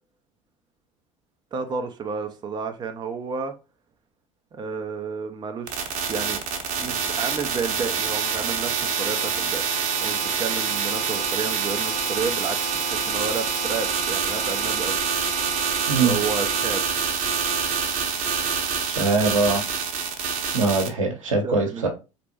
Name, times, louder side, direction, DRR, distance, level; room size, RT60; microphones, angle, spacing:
voice 1, 1.5-3.5 4.5-6.4 6.8-9.6 10.0-15.0 16.0-16.8 21.4-21.9, right 5 dB, 25° right, 0.6 m, -31 dB
sound 1, 5.7-20.9, right 6 dB, 50° right, 0.9 m, -26 dB
voice 2, 18.8-19.6 20.5-21.9, right 3 dB, 75° right, 1.0 m, -22 dB
4.2 x 3.1 x 2.8 m
figure-of-eight pair, 65°, 17 cm